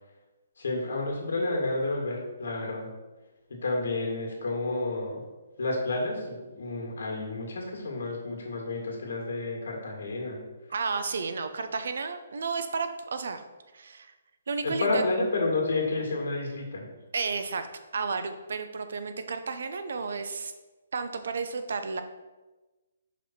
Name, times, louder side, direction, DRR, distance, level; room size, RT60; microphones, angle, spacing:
voice 1, 0.6-2.9 3.5-5.2 5.6-10.4 14.6-16.9, left 2 dB, 75° left, 0 dB, 1.9 m, -30 dB
voice 2, 10.7-13.4 13.7-14.1 14.5-15.0 17.1-17.7 17.9-20.5 20.9-22.0, right 4 dB, 70° right, 9 dB, 0.6 m, -32 dB
5.2 x 5.1 x 4.3 m, 1.2 s
hypercardioid pair, 155°, 0 cm